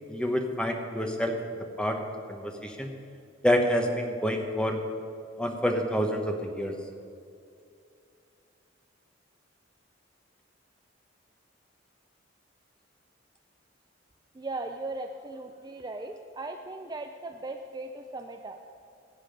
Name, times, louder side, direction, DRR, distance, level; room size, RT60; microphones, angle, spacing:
voice 1, 0.1-1.3 1.8-2.0 2.3-2.9 3.4-4.8 5.4-6.7, equal, 5° left, 3 dB, 1.0 m, -27 dB
voice 2, 14.3-18.6, right 2 dB, 20° right, 5 dB, 0.4 m, -38 dB
16.5 x 7.6 x 5.2 m, 2.5 s
head